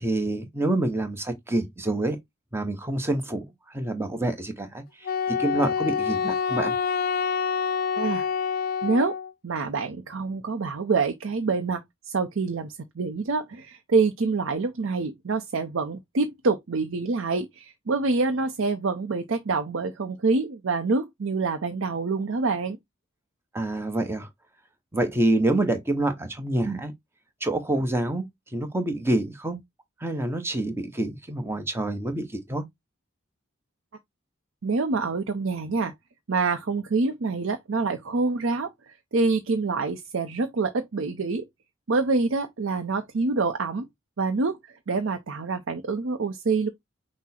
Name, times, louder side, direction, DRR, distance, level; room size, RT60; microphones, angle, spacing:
voice 1, 0.0-2.2 2.5-6.7 23.5-24.3 24.9-26.9 27.4-28.3 28.5-29.6 30.0-32.6, right 1 dB, 10° right, 0.8 m, -27 dB
Wind instrument woodwind instrument, 5.1-9.3, left 6 dB, 45° left, 0.4 m, -27 dB
voice 2, 8.0-8.3 8.8-9.1 9.4-22.8 34.6-35.9 36.3-41.4 41.9-43.9 44.2-46.7, right 3 dB, 65° right, 0.6 m, -26 dB
6.0 x 2.1 x 4.2 m
head